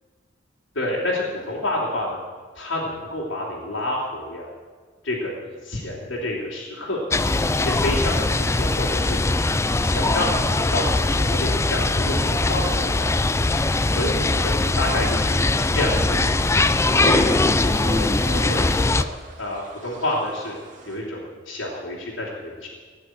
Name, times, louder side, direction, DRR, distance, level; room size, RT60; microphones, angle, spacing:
voice 1, 0.7-2.2 2.5-4.4 5.0-7.0 7.5-9.2 9.8-13.4 13.9-14.5 14.8-15.4 15.7-16.3 17.0-17.7 18.4-19.1 19.4-20.5 20.9-22.7, left 1 dB, 70° left, -6 dB, 3.4 m, -28 dB
sound 1, 7.1-19.0, left 2 dB, 15° left, 0.4 m, -21 dB
sound 2, 15.8-21.0, equal, 40° right, 2.3 m, -38 dB
17.5 x 6.4 x 9.4 m, 1.5 s
head